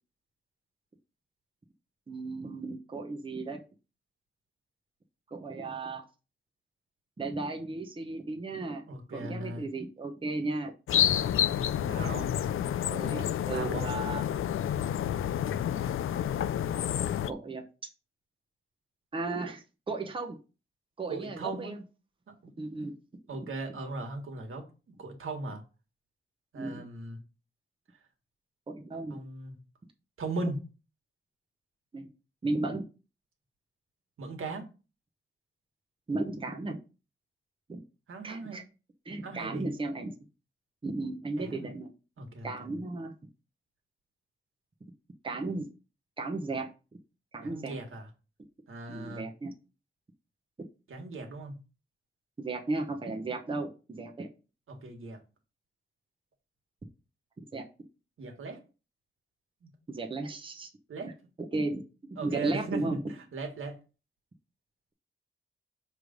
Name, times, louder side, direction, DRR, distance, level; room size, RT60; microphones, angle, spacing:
voice 1, 2.1-3.6 5.3-6.0 7.2-8.8 9.1-10.7 11.6-11.7 12.0-12.1 12.8-14.2 17.3-17.6 19.1-20.4 21.0-21.8 22.6-22.9 26.6-26.8 28.7-29.2 31.9-32.1 32.4-32.9 36.1-36.8 37.7-37.8 38.2-38.6 39.0-40.1 40.8-41.9 42.4-43.1 45.2-45.7 46.2-46.7 47.3-47.8 48.9-49.5 52.4-54.3 57.5-57.6 59.9-60.7 61.5-63.0, right 2 dB, 25° right, 2 dB, 0.8 m, -35 dB
voice 2, 8.9-9.6 11.8-12.3 13.5-13.9 21.1-21.7 23.3-24.6 25.0-25.6 26.5-27.2 29.1-29.6 30.2-30.6 34.2-34.6 38.1-38.6 39.2-39.7 41.4-41.7 42.2-42.8 47.4-48.0 48.7-49.2 50.9-51.6 54.7-55.2 58.2-58.6 59.6-59.7 60.9-61.1 62.2-63.8, right 3 dB, 80° right, 4 dB, 1.6 m, -38 dB
sound 1, 10.9-17.3, left 10 dB, 80° left, 0.4 m, -29 dB
6.6 x 3.3 x 5.1 m, 0.32 s
wide cardioid pair, 135°, 21 cm